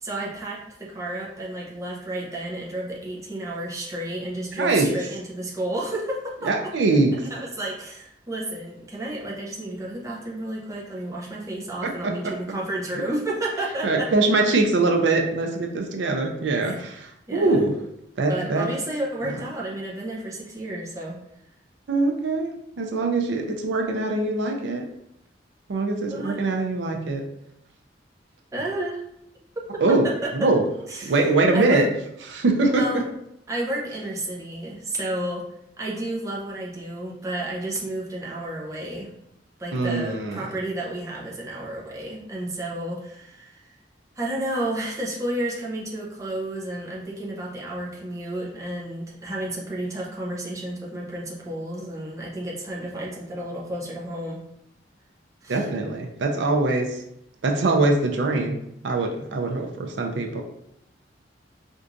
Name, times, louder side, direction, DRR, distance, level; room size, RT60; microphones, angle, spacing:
voice 1, 0.0-6.5 7.3-14.1 16.6-16.8 17.3-17.7 18.3-21.2 26.1-26.5 28.5-29.0 29.7-30.5 30.9-31.1 31.5-31.9 32.7-33.0 33.5-35.4 35.8-39.1 39.6-43.7 44.2-54.4 55.4-55.6, right 1 dB, 20° right, -4 dB, 0.7 m, -31 dB
voice 2, 4.5-4.9 6.4-7.1 11.8-12.3 13.8-17.7 18.2-18.7 21.9-24.8 25.7-27.2 29.8-30.1 30.3-30.6 31.0-31.9 32.3-33.0 39.7-40.4 55.5-57.0 57.4-58.6 58.8-60.4, right 3 dB, 75° right, 2 dB, 0.5 m, -23 dB
4.4 x 2.6 x 2.5 m, 0.78 s
head